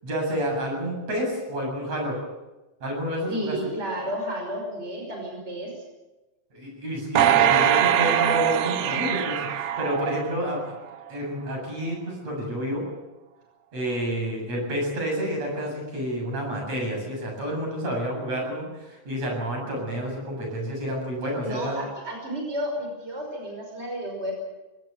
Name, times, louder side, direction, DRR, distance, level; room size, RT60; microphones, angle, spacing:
voice 1, 0.0-2.2 2.8-3.6 6.5-10.7 11.1-12.8 13.7-21.8, equal, 60° right, 1 dB, 8.9 m, -29 dB
voice 2, 3.3-5.7 21.4-24.3, equal, 20° right, 1 dB, 5.8 m, -32 dB
sound 1, 7.2-10.6 11.1-11.2, right 10 dB, 80° right, 2.5 m, -22 dB
23.0 x 18.0 x 8.2 m, 1.1 s
omnidirectional pair, 3.4 m